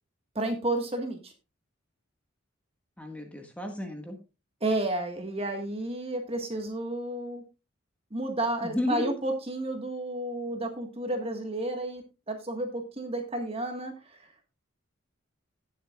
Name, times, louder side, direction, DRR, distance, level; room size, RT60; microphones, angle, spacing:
voice 1, 0.3-1.3 4.6-7.4 8.1-13.9, right 1 dB, 30° right, 5 dB, 1.6 m, -31 dB
voice 2, 3.0-4.2 8.6-9.1, left 1 dB, 5° left, 3 dB, 1.7 m, -33 dB
18.0 x 7.3 x 2.4 m, 0.28 s
head